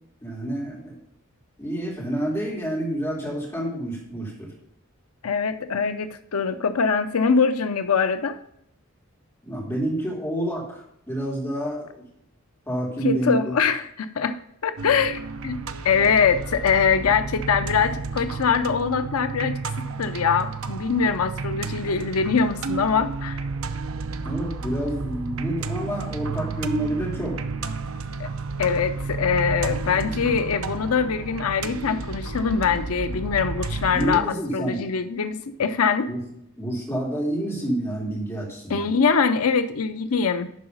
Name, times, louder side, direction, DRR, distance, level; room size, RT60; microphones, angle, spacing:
voice 1, 0.2-0.9 1.6-4.5 9.4-12.0 12.7-13.4 24.2-27.4 33.9-34.8 36.1-36.2 36.6-38.9, right 1 dB, 10° left, -4 dB, 3.5 m, -28 dB
voice 2, 5.2-8.4 13.0-14.4 14.6-15.6 15.8-23.4 28.2-28.3 28.6-34.3 34.5-36.1 38.7-40.5, left 6 dB, 90° left, 10 dB, 0.6 m, -23 dB
sound 1, 14.8-34.2, right 4 dB, 70° right, 0.7 m, -31 dB
11.5 x 4.8 x 5.4 m, 0.73 s
head